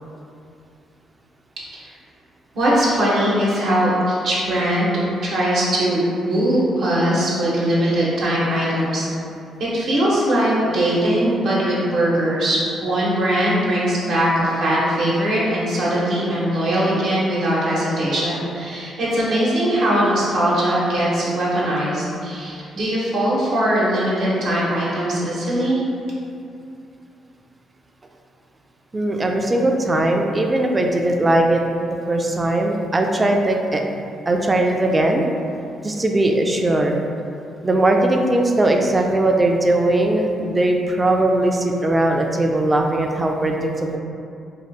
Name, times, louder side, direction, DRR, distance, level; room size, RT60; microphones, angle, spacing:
voice 1, 2.5-4.9 5.2-9.1 9.6-25.8, right 1 dB, 75° right, -7 dB, 0.9 m, -20 dB
voice 2, 28.9-31.6 31.9-33.8 34.3-35.2 35.8-37.0 37.6-44.0, right 1 dB, 25° right, 2 dB, 0.3 m, -19 dB
2.8 x 2.4 x 3.3 m, 2.5 s
cardioid pair, 90°, 0 cm